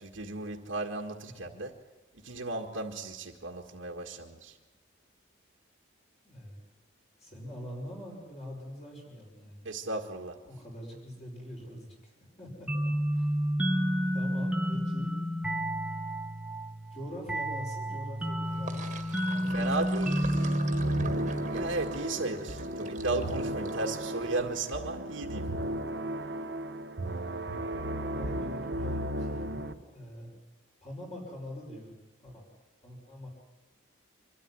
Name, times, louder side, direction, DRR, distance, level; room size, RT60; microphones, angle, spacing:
voice 1, 0.0-1.7 2.2-4.5 9.6-10.4 19.5-20.2 21.5-25.5, right 2 dB, 85° right, 1 dB, 1.7 m, -35 dB
voice 2, 6.2-6.6 7.2-9.7 10.5-13.3 14.1-15.2 16.9-21.2 27.8-30.3 30.8-32.0 32.2-32.4 32.8-33.3, equal, 30° left, -2 dB, 5.3 m, -44 dB
sound 1, 12.7-22.0, equal, 5° right, 1.3 m, -30 dB
Sink (filling or washing), 18.4-24.7, right 2 dB, 35° right, 1.7 m, -44 dB
sound 2, 20.2-29.7, right 1 dB, 55° right, 1.1 m, -35 dB
25.0 x 13.0 x 10.0 m, 1.1 s
head